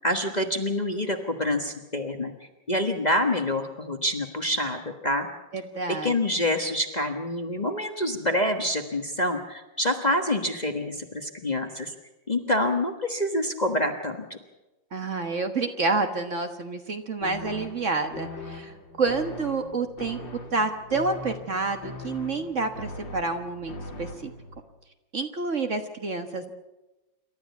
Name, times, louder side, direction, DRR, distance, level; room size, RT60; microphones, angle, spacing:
voice 1, 0.0-2.3 2.7-5.3 5.9-11.9 12.3-14.4, left 1 dB, 25° left, 5 dB, 1.3 m, -27 dB
voice 2, 5.5-6.1 14.9-20.2 20.5-24.3 25.1-26.5, right 3 dB, 45° right, 6 dB, 1.5 m, -29 dB
sound 1, 17.2-24.6, left 2 dB, 90° left, 5.2 m, -40 dB
28.0 x 13.0 x 8.4 m, 1.1 s
omnidirectional pair, 2.0 m